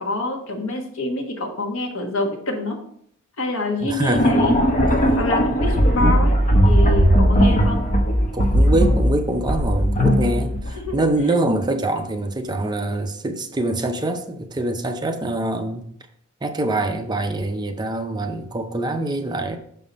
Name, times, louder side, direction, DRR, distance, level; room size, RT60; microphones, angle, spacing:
voice 1, 0.0-2.8 3.4-4.5 5.2-6.3 6.6-7.8 10.7-11.0, left 2 dB, 75° left, 1.4 m, -26 dB
voice 2, 3.8-4.4 5.1-5.5 8.2-15.9 16.4-19.6, right 2 dB, 20° right, 0.5 m, -24 dB
sound 1, 4.1-11.0, equal, 40° left, 1.0 m, -18 dB
6.0 x 5.6 x 4.1 m
head